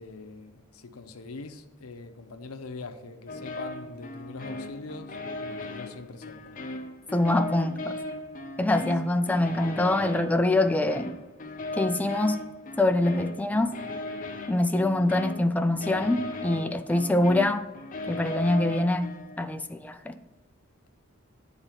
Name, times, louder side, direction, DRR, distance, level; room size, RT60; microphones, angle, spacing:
voice 1, 0.0-6.6 9.0-9.2, left 3 dB, 85° left, 0.7 m, -43 dB
sound 1, 3.3-19.5, left 2 dB, 40° left, 0.7 m, -37 dB
voice 2, 7.1-8.0 8.6-11.2 11.7-12.4 12.8-13.7 14.5-17.6 18.1-19.1 19.4-20.2, left 2 dB, 5° left, 0.3 m, -24 dB
9.0 x 4.0 x 5.7 m
head